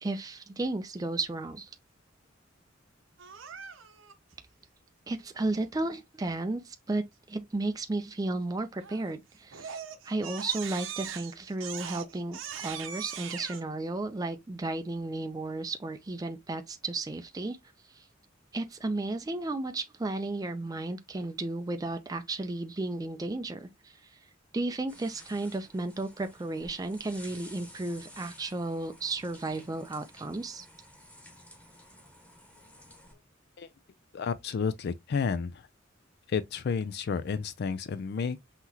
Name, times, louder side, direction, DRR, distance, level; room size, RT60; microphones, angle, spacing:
voice 1, 0.0-1.7 5.1-9.8 10.0-17.6 17.9-18.1 18.5-24.2 24.5-30.7, right 2 dB, 20° right, 0.4 m, -33 dB
Crying sobbing, 3.2-4.1 8.8-9.1 9.5-13.6, right 8 dB, 70° right, 0.9 m, -40 dB
sound 1, 24.9-33.1, equal, 5° left, 1.2 m, -53 dB
voice 2, 34.1-35.7 36.3-38.4, left 5 dB, 55° left, 0.3 m, -31 dB
5.8 x 2.9 x 2.7 m
head